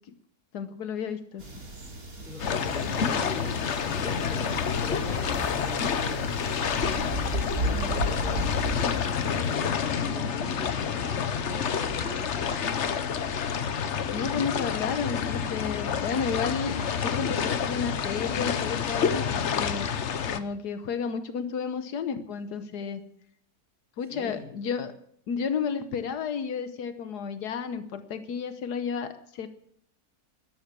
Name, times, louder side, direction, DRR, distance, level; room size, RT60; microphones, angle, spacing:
voice 1, 0.5-1.4 7.7-7.9 14.1-16.8 17.0-19.9 20.3-23.0 24.0-24.9 25.3-29.5, left 6 dB, 85° left, 10 dB, 1.6 m, -32 dB
sound 1, 1.4-9.8, right 2 dB, 60° right, 3.6 m, -35 dB
voice 2, 2.2-6.2 7.2-12.8 24.1-24.5, left 1 dB, ahead, -2 dB, 3.5 m, -42 dB
sound 2, 2.4-20.4, left 7 dB, 50° left, 1.1 m, -28 dB
12.5 x 12.0 x 8.3 m, 0.67 s
omnidirectional pair, 1.7 m